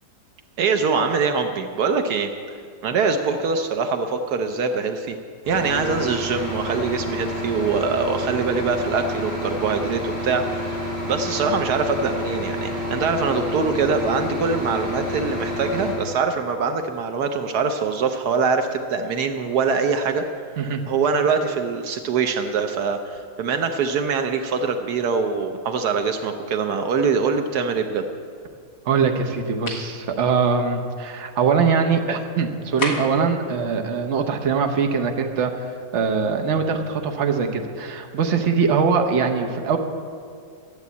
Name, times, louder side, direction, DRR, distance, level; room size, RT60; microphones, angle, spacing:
voice 1, 0.6-2.3 2.8-5.2 5.5-20.2 20.9-28.0, right 5 dB, 75° right, 6 dB, 1.3 m, -23 dB
sound 1, 5.4-15.9, left 1 dB, 10° left, 4.3 m, -29 dB
voice 2, 28.9-35.5 35.9-39.8, right 5 dB, 50° right, 4 dB, 1.2 m, -22 dB
sound 2, 29.7-29.9 32.8-33.3, left 3 dB, 55° left, 2.0 m, -28 dB
12.0 x 8.0 x 8.3 m, 2.2 s
omnidirectional pair, 1.8 m